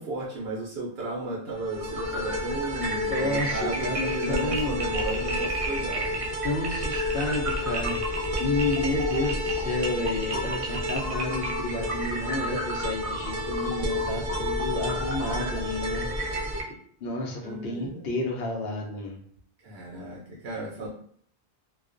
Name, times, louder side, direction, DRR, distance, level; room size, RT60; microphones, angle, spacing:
voice 1, 0.0-6.3 17.4-18.2 19.6-20.9, right 1 dB, 75° right, -4 dB, 0.8 m, -34 dB
sound 1, 1.6-16.6, left 1 dB, 55° right, 0.4 m, -29 dB
voice 2, 3.1-4.8 6.4-16.3 16.7-19.2, left 2 dB, 75° left, 0 dB, 0.8 m, -31 dB
2.3 x 2.2 x 2.4 m, 0.64 s
omnidirectional pair, 1.1 m